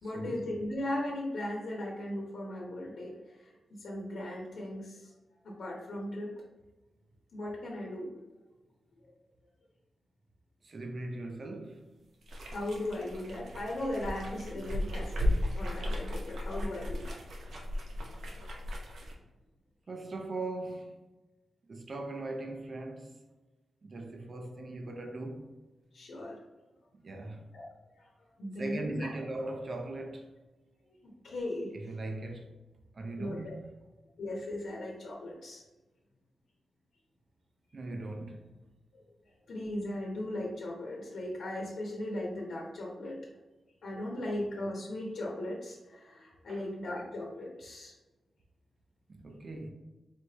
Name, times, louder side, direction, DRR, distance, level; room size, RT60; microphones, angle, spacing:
voice 1, 0.0-3.5 3.8-5.1 5.4-6.3 7.3-8.3 12.4-17.5 25.9-26.4 27.5-27.6 28.0-28.1 28.4-29.1 31.0-31.7 33.2-33.6 34.2-35.6 39.5-43.2 43.8-47.9, left 1 dB, 75° left, 1.1 m, -37 dB
voice 2, 10.6-11.9 18.9-19.2 19.9-21.0 21.7-23.2 23.8-25.5 26.9-27.5 28.6-30.3 31.7-32.5 32.9-33.7 37.7-38.5 46.5-46.6 49.1-49.7, right 2 dB, 45° right, 0.6 m, -40 dB
sound 1, 12.2-19.1, left 1 dB, 80° right, 0.8 m, -35 dB
4.5 x 3.4 x 2.9 m
wide cardioid pair, 110°, 0 cm